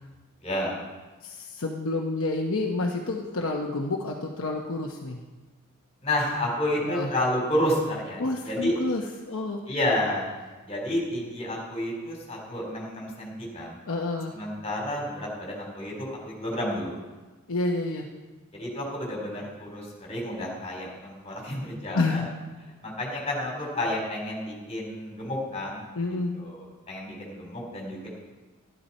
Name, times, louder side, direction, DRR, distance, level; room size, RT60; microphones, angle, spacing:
voice 1, 0.4-0.8 6.0-8.7 9.7-10.3 10.6-13.8 14.3-16.9 18.5-22.2 22.8-25.8 26.3-28.1, left 1 dB, 30° left, -2 dB, 3.9 m, -30 dB
voice 2, 1.2-5.2 6.8-7.1 8.2-9.6 13.9-14.3 17.5-18.1 21.9-22.3 25.9-26.4, left 2 dB, 65° left, 0 dB, 1.0 m, -29 dB
12.5 x 12.0 x 4.3 m, 1.2 s
head